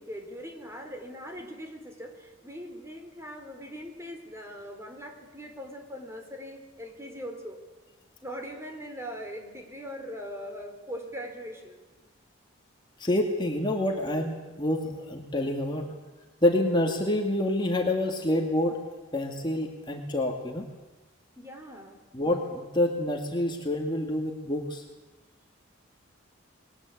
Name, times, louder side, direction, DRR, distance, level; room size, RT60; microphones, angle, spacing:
voice 1, 0.0-7.6 8.2-11.8 21.4-22.0, equal, 15° right, 4 dB, 4.0 m, -41 dB
voice 2, 13.0-15.9 16.4-18.8 19.1-20.7 22.1-24.8, left 1 dB, 25° left, 1 dB, 2.3 m, -27 dB
29.0 x 22.0 x 8.5 m, 1.2 s
head